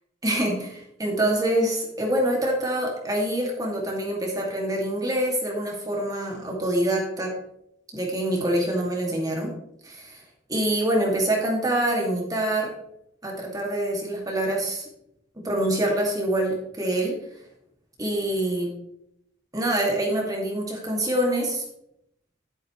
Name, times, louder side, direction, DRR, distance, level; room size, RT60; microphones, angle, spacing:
voice 1, 0.2-7.3 7.9-9.5 9.8-10.2 10.5-12.7 13.2-14.8 15.4-17.2 18.0-18.7 19.5-21.6, right 1 dB, 20° right, -1 dB, 2.3 m, -25 dB
11.5 x 8.8 x 3.2 m, 0.78 s
head